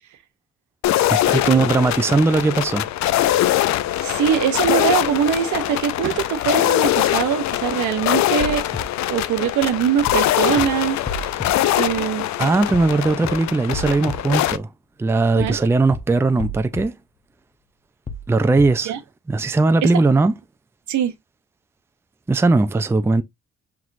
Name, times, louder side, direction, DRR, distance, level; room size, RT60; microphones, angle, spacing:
sound 1, 0.8-14.6, left 13 dB, 65° left, 0.4 m, -22 dB
voice 1, 1.1-2.9 12.4-14.7 15.0-16.9 18.3-18.9 19.3-20.3 22.3-23.2, right 3 dB, 10° right, 0.4 m, -19 dB
sound 2, 2.2-3.6 5.0-5.3 5.7-6.9, right 8 dB, 40° right, 0.9 m, -40 dB
voice 2, 4.0-8.7 9.1-11.3 11.8-12.3 15.4-15.6 18.9-19.0 19.8-19.9 20.9-21.1, right 9 dB, 75° right, 0.9 m, -22 dB
sound 3, 8.4-8.8 10.1-10.3 10.6-10.7 11.1-11.5 12.7-12.9 13.2-13.3 13.7-14.2 15.4-15.6 15.9-16.0 16.4-16.8 18.1-18.3 18.6-18.7, left 2 dB, 20° left, 0.8 m, -30 dB
5.9 x 2.9 x 2.5 m
cardioid pair, 90°, 30 cm